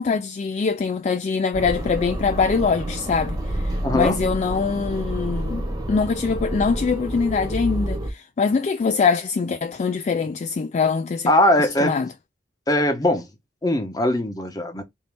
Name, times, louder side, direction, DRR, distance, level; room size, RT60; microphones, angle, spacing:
voice 1, 0.0-11.3 11.8-12.1, left 5 dB, 40° left, 0.3 m, -23 dB
sound 1, 1.5-8.1, right 1 dB, 20° right, 0.8 m, -29 dB
voice 2, 3.8-4.2 11.3-12.0 12.7-13.3 13.6-14.8, left 1 dB, 20° left, 0.9 m, -20 dB
3.9 x 2.7 x 3.4 m
head